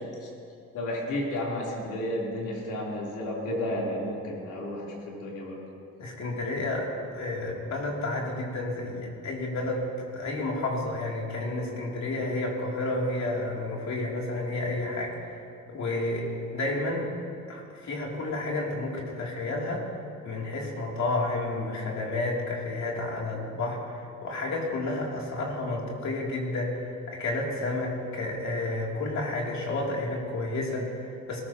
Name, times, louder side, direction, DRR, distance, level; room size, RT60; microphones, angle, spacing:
voice 1, 0.7-5.6, left 1 dB, 85° left, -4 dB, 3.7 m, -32 dB
voice 2, 6.0-15.4 15.7-17.1 17.5-19.9 20.2-31.4, left 2 dB, 65° left, -2 dB, 3.1 m, -31 dB
20.0 x 14.0 x 3.0 m, 2.4 s
cardioid pair, 90°, 30 cm